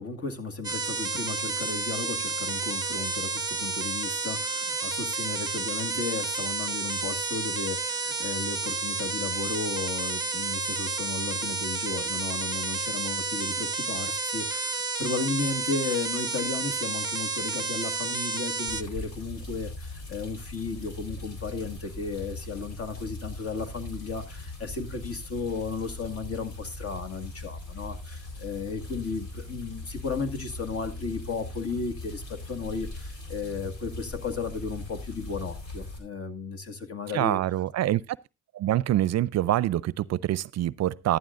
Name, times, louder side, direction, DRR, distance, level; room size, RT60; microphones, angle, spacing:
voice 1, 0.0-37.4, left 4 dB, 50° left, 2.0 m, -34 dB
sound 1, 0.6-18.8, right 4 dB, 15° right, 1.1 m, -31 dB
sound 2, 18.7-36.0, left 2 dB, 75° left, 4.1 m, -40 dB
voice 2, 37.1-38.0 38.5-41.2, right 13 dB, 60° right, 0.5 m, -25 dB
14.5 x 11.5 x 2.5 m
cardioid pair, 90°, 30 cm